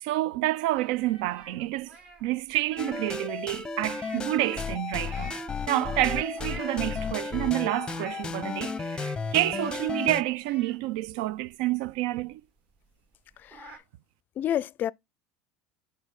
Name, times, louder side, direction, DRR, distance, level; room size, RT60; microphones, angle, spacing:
voice 1, 0.0-1.9 2.2-5.4 5.7-12.4, right 16 dB, 70° right, 0.3 m, -28 dB
sound 1, 0.7-3.2 3.5-4.4 5.0-5.6 6.1-7.1 7.6-8.4 8.8-8.9 9.2-10.1 10.4-12.0 12.3-12.4 12.8-12.9 13.1-13.8, right 2 dB, 35° right, 2.4 m, -47 dB
sound 2, 2.8-10.2, left 4 dB, 20° left, 0.7 m, -34 dB
voice 2, 13.4-13.7 14.4-14.9, left 11 dB, 45° left, 0.4 m, -29 dB
5.7 x 3.8 x 5.7 m
hypercardioid pair, 85°, 4 cm